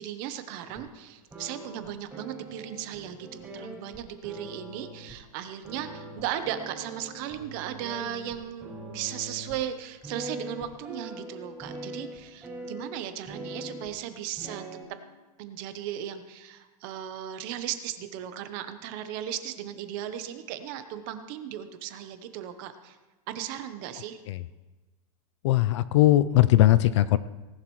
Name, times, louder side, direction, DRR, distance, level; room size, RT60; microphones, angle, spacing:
voice 1, 0.0-14.6 15.4-23.0 23.3-24.2, right 10 dB, 35° right, 9 dB, 0.8 m, -36 dB
sound 1, 0.7-0.9 1.3-5.1 5.6-9.6 10.0-13.9 14.4-14.8, right 1 dB, 5° right, 5.2 m, -42 dB
voice 2, 25.4-27.2, left 14 dB, 50° left, 15 dB, 0.4 m, -20 dB
18.5 x 11.0 x 3.1 m, 1.2 s
supercardioid pair, 170°, 20 cm